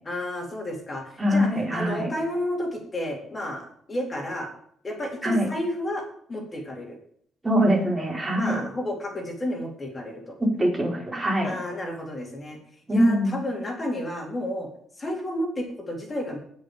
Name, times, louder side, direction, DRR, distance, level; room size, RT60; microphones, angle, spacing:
voice 1, 0.0-4.5 4.8-7.0 8.4-10.4 11.4-12.6 12.9-14.7 15.0-16.4, left 1 dB, 25° left, 0 dB, 3.8 m, -31 dB
voice 2, 1.2-2.1 5.2-5.5 7.4-8.6 10.4-11.5 12.9-13.4, equal, 15° right, -2 dB, 4.6 m, -23 dB
19.5 x 6.5 x 5.1 m, 0.64 s
cardioid pair, 110°, 0 cm